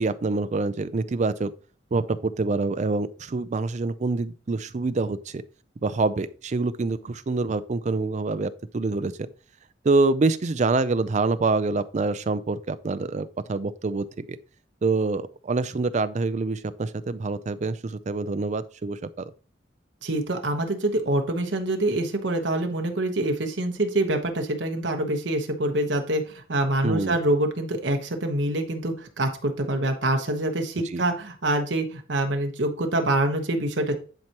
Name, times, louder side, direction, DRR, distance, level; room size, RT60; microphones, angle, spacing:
voice 1, 0.0-1.5 1.9-5.4 5.8-9.1 9.8-14.3 14.8-19.2 26.8-27.2 30.9-31.0, right 3 dB, 40° right, 0.4 m, -26 dB
voice 2, 20.0-33.9, right 1 dB, 65° right, 1.1 m, -25 dB
10.5 x 4.6 x 2.9 m
head